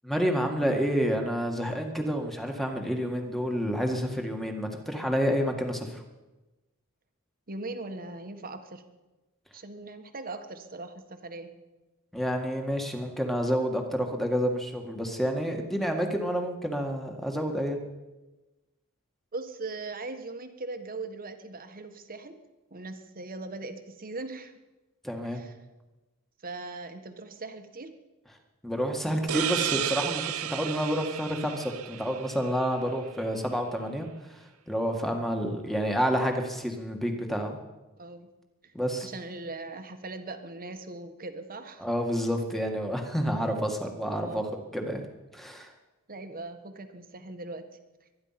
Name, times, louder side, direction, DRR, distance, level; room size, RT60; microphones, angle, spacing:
voice 1, 0.0-6.0 12.1-17.8 25.0-25.4 28.6-30.2 30.5-34.1 34.7-37.6 38.7-39.1 41.8-44.4 44.7-45.0 45.3-45.7, equal, ahead, 3 dB, 1.9 m, -29 dB
voice 2, 7.5-8.8 9.5-11.5 19.3-22.3 22.7-24.5 25.2-25.6 26.4-27.9 38.0-38.3 38.6-38.7 39.0-41.9 44.1-44.5 46.1-47.6, right 3 dB, 40° right, 7 dB, 1.4 m, -40 dB
sound 1, 29.3-32.7, right 10 dB, 70° right, 0.7 m, -32 dB
23.5 x 10.5 x 5.9 m, 1.1 s
head